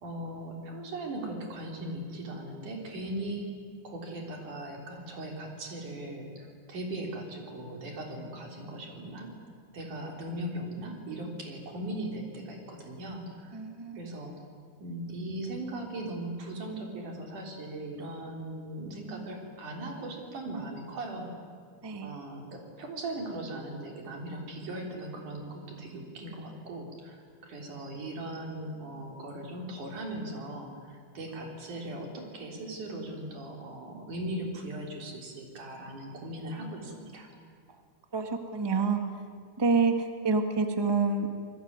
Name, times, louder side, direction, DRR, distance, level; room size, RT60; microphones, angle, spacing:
voice 1, 0.0-3.5 3.8-9.3 9.7-13.6 14.0-14.4 14.8-21.3 22.0-37.3, right 1 dB, 85° right, 2 dB, 5.2 m, -39 dB
voice 2, 13.5-14.0 21.8-22.1 38.1-39.0 39.6-41.3, right 4 dB, 10° right, 6 dB, 1.1 m, -27 dB
27.5 x 20.0 x 9.6 m, 2.1 s
omnidirectional pair, 3.5 m